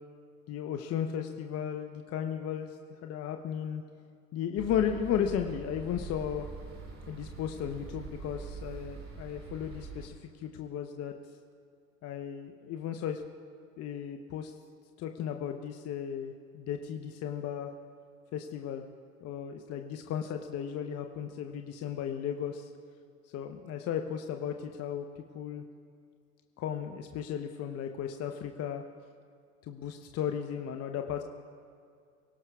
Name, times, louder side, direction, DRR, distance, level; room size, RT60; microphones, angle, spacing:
voice 1, 0.5-3.8 4.3-6.4 7.1-11.1 12.0-13.2 13.8-14.5 15.0-17.7 18.3-18.8 19.2-22.7 23.3-25.6 26.6-28.8 29.6-31.2, left 9 dB, 35° left, 5 dB, 0.9 m, -35 dB
sound 1, 4.6-10.1, right 4 dB, 25° right, 3.3 m, -44 dB
25.0 x 17.5 x 2.4 m, 2.3 s
figure-of-eight pair, 85°, 46 cm